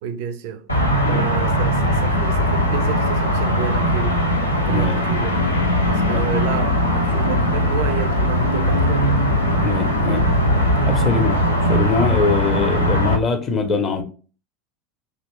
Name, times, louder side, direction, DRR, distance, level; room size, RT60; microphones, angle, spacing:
voice 1, 0.0-0.6 1.1-4.2 4.7-5.4 5.9-9.1 13.5-13.6, right 8 dB, 55° right, 0.4 m, -30 dB
sound 1, 0.7-13.2, equal, 85° left, 0.5 m, -19 dB
voice 2, 9.6-10.4 10.8-14.0, left 4 dB, 30° left, 0.6 m, -23 dB
2.9 x 2.5 x 2.9 m
figure-of-eight pair, 75°, 0 cm